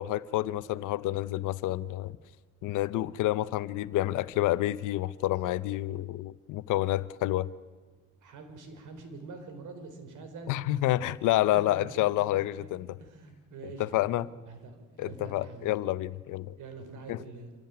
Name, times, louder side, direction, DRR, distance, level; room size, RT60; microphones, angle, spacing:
voice 1, 0.0-2.1 2.6-7.5 10.5-13.0 13.8-14.3 15.0-16.6 17.1-17.2, left 15 dB, 90° left, 16 dB, 0.8 m, -29 dB
voice 2, 8.2-10.6 11.5-12.7 13.0-15.7 16.6-17.5, right 4 dB, 85° right, 8 dB, 4.3 m, -45 dB
26.5 x 16.5 x 9.5 m, 1.4 s
cardioid pair, 90°, 30 cm